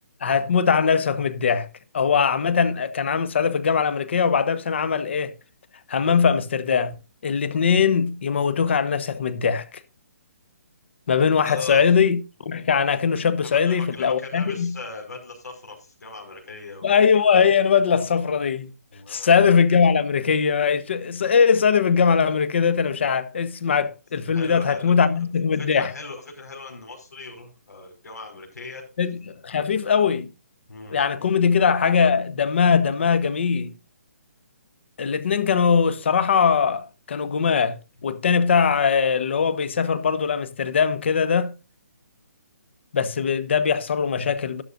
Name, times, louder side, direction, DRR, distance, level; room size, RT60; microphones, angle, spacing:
voice 1, 0.2-1.7 1.9-5.3 5.9-6.9 7.2-9.7 11.1-14.8 16.8-18.7 19.1-25.9 29.0-30.3 30.9-33.7 35.0-41.5 42.9-44.6, left 6 dB, 45° left, 1.1 m, -21 dB
voice 2, 11.4-11.8 13.4-16.9 18.9-19.3 24.3-25.2 25.6-28.8 30.7-31.0, left 3 dB, 90° left, 5.2 m, -39 dB
12.5 x 11.5 x 2.6 m
hypercardioid pair, 170°, 9 cm